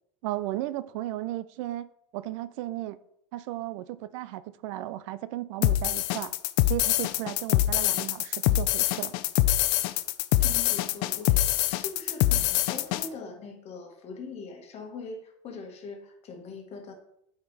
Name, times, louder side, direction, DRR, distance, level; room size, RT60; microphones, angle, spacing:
voice 1, 0.2-1.9 2.1-3.0 3.3-6.3 6.6-9.2, right 15 dB, 65° right, 0.4 m, -35 dB
sound 1, 5.6-13.1, left 15 dB, 55° left, 0.5 m, -24 dB
voice 2, 10.4-16.9, left 4 dB, 35° left, 1.6 m, -42 dB
8.3 x 4.8 x 3.3 m
supercardioid pair, 115°, 17 cm